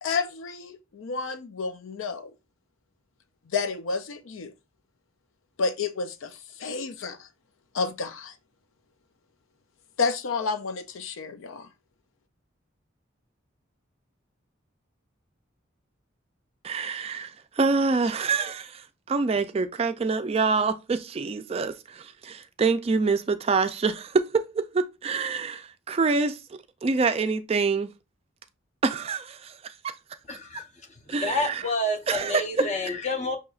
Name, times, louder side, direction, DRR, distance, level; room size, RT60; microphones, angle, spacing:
voice 1, 0.0-2.3 3.5-4.5 5.6-7.3 7.7-8.3 10.0-11.7, left 4 dB, 85° left, 0.5 m, -30 dB
voice 2, 16.6-17.3 17.6-18.8 19.1-24.3 24.7-26.4 26.8-27.9 28.8-29.5 31.1-31.6 32.1-32.4, right 4 dB, 30° right, 0.3 m, -26 dB
voice 3, 30.3-30.6 31.1-33.4, left 1 dB, 35° left, 0.8 m, -29 dB
6.1 x 2.8 x 2.4 m
head